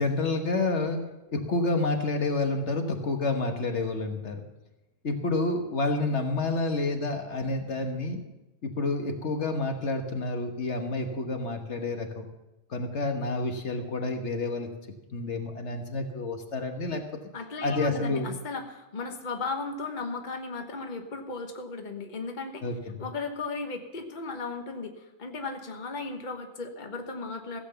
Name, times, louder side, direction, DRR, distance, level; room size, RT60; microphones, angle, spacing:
voice 1, 0.0-4.4 5.0-8.2 8.6-12.3 12.7-14.7 15.1-17.0 17.6-18.3 22.6-23.0, left 3 dB, 70° left, 5 dB, 1.6 m, -29 dB
voice 2, 17.3-22.6 23.0-27.6, left 3 dB, 40° left, 4 dB, 1.4 m, -36 dB
15.5 x 8.0 x 6.8 m, 0.99 s
omnidirectional pair, 1.2 m